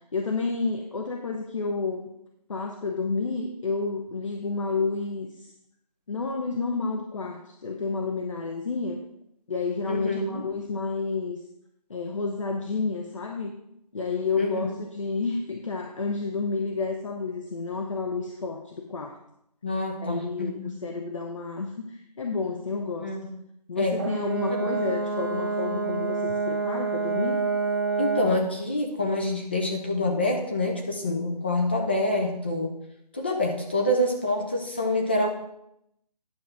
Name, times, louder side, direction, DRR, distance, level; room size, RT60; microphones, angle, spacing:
voice 1, 0.1-2.1 2.5-5.5 6.1-9.0 9.5-11.4 11.9-13.5 13.9-19.2 20.0-23.1 23.7-27.4, left 4 dB, 50° left, 3 dB, 1.0 m, -30 dB
voice 2, 9.9-10.4 14.4-14.7 19.6-20.7 23.0-23.3 23.8-24.0 24.6-24.7 28.0-32.7 33.1-35.3, left 1 dB, 15° left, 2 dB, 0.5 m, -26 dB
Brass instrument, 24.0-28.5, right 4 dB, 30° right, 0.6 m, -28 dB
10.0 x 5.2 x 5.9 m, 0.78 s
figure-of-eight pair, 160°, 21 cm